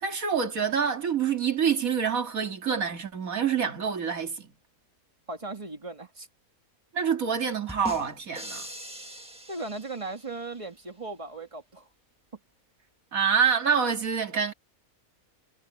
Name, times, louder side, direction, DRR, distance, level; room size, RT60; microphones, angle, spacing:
voice 1, 0.0-4.5 6.9-8.7 13.1-14.5, right 7 dB, 70° right, 2.6 m, -26 dB
voice 2, 5.3-6.3 9.5-11.9, right 3 dB, 20° right, 2.1 m, -37 dB
sound 1, 7.7-10.5, equal, 5° right, 1.8 m, -41 dB
omnidirectional pair, 1.5 m